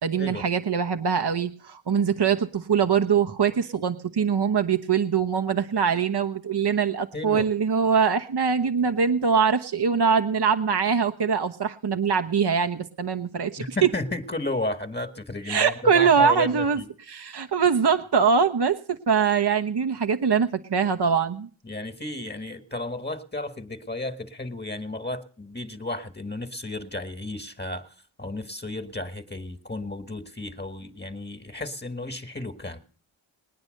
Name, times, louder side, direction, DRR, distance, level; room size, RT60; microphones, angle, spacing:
voice 1, 0.0-13.9 15.5-21.5, right 6 dB, 55° right, 9 dB, 1.1 m, -23 dB
voice 2, 7.1-7.5 13.6-16.9 21.6-27.9 28.2-32.8, left 2 dB, 20° left, 10 dB, 1.7 m, -33 dB
20.5 x 9.7 x 6.5 m, 0.43 s
cardioid pair, 55°, 48 cm